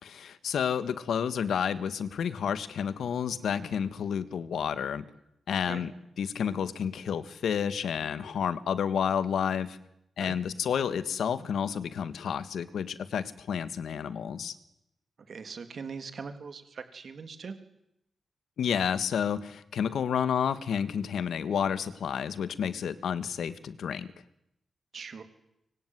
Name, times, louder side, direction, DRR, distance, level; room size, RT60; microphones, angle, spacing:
voice 1, 0.0-5.0 5.5-5.9 6.2-9.8 10.2-14.5 18.6-24.1, left 7 dB, 85° left, 14 dB, 1.7 m, -30 dB
voice 2, 15.3-17.6 24.9-25.2, right 5 dB, 50° right, 9 dB, 3.2 m, -41 dB
25.0 x 24.0 x 9.5 m, 0.83 s
wide cardioid pair, 140°, 0 cm